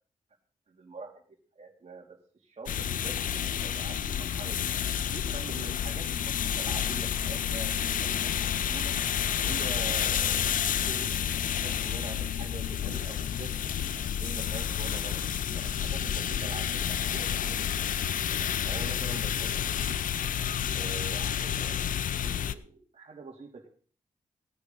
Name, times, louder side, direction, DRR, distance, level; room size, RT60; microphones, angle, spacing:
voice 1, 0.7-1.2 1.5-4.7 5.1-9.0 9.4-11.1 11.4-13.7 14.2-15.2 15.5-18.1 18.6-20.0 20.7-23.7, right 4 dB, 45° right, -1 dB, 2.9 m, -45 dB
sound 1, 2.7-22.5, left 9 dB, 70° left, 0.6 m, -30 dB
17.5 x 9.7 x 3.9 m, 0.41 s
supercardioid pair, 40°, 15 cm